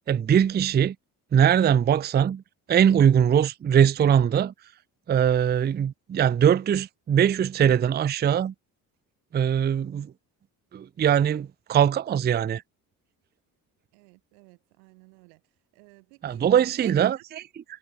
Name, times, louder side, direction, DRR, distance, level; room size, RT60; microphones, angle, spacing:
voice 1, 0.1-0.9 1.3-2.4 2.7-4.5 5.1-8.5 9.3-10.1 10.7-12.6 16.2-17.6, right 9 dB, 20° right, 0.5 m, -21 dB
voice 2, 13.9-15.4 15.8-16.0 16.3-16.4 16.8-17.1, right 38 dB, 75° right, 0.9 m, -45 dB
hypercardioid pair, 45°, 49 cm